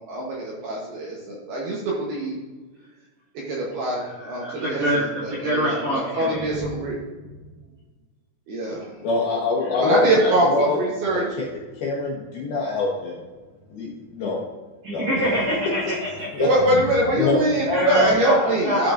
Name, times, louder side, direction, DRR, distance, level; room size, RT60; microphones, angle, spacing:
voice 1, 0.0-2.4 3.3-7.0 8.5-8.9 9.8-11.3 16.4-18.9, right 1 dB, 70° right, -4 dB, 2.6 m, -23 dB
voice 2, 3.9-6.5 9.6-9.8 10.0-10.3 14.8-16.4 17.7-18.9, equal, 45° right, -7 dB, 2.5 m, -25 dB
voice 3, 9.0-10.8 11.1-11.5 11.8-13.2 13.7-14.4 14.9-15.1 16.3-16.5 17.2-17.4, left 3 dB, 70° left, -4 dB, 2.4 m, -24 dB
12.5 x 5.3 x 2.5 m, 1.3 s
omnidirectional pair, 5.7 m